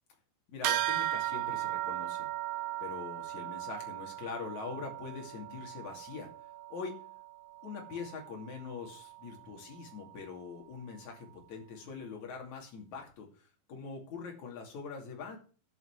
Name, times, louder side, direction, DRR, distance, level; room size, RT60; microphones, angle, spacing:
voice 1, 0.5-2.3 2.8-6.3 6.7-7.0 7.6-13.3 13.7-15.4, left 5 dB, 55° left, 1 dB, 3.9 m, -43 dB
sound 1, 0.6-10.4, right 14 dB, 85° right, 2.6 m, -38 dB
11.0 x 5.5 x 8.1 m, 0.38 s
omnidirectional pair, 4.1 m